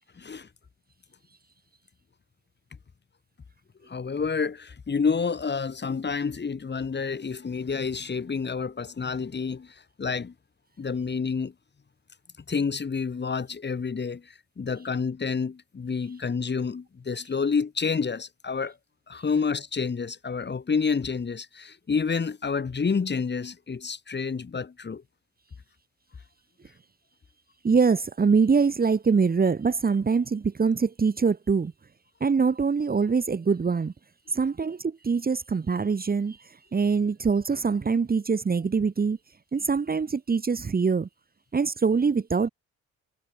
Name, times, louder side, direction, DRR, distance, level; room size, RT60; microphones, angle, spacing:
voice 1, 0.2-0.5 3.8-10.3 10.8-11.5 12.5-18.8 19.1-25.0, left 5 dB, 35° left, 5.6 m, -29 dB
voice 2, 27.6-31.7 32.2-33.9 34.3-39.2 39.5-41.1 41.5-42.5, right 5 dB, 30° right, 1.8 m, -24 dB
cardioid pair, 90°, 30 cm